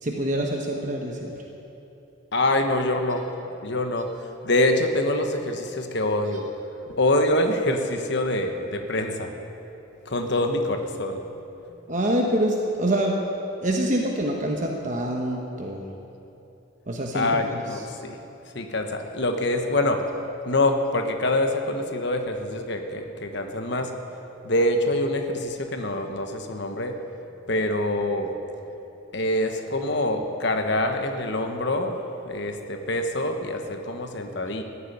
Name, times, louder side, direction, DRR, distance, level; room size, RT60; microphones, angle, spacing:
voice 1, 0.0-1.3 11.9-13.2 13.6-15.8 16.9-17.8, right 1 dB, 40° right, 1 dB, 1.1 m, -26 dB
voice 2, 2.3-3.2 3.6-4.1 4.4-6.4 6.9-9.3 10.1-11.2 17.1-18.2 18.5-20.0 20.5-23.9 24.4-27.0 27.5-28.3 29.1-34.6, left 1 dB, 60° left, 5 dB, 1.2 m, -25 dB
14.5 x 8.2 x 9.6 m, 2.9 s
head